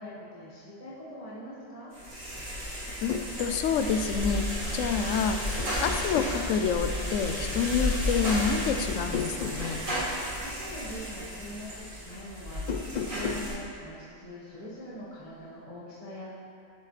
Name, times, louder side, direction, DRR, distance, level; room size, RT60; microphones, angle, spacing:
voice 1, 0.0-1.9 10.0-16.3, left 1 dB, 30° left, -9 dB, 1.7 m, -43 dB
sound 1, 1.9-13.5, equal, 85° right, 2.7 m, -33 dB
sound 2, 2.9-3.3 4.9-5.2 5.6-6.4 8.9-9.7 12.6-13.5, left 6 dB, 50° left, 0.5 m, -34 dB
voice 2, 3.0-4.5 4.7-9.8, left 6 dB, 85° left, 8 dB, 0.9 m, -28 dB
11.0 x 7.0 x 3.3 m, 2.4 s
omnidirectional pair, 1.3 m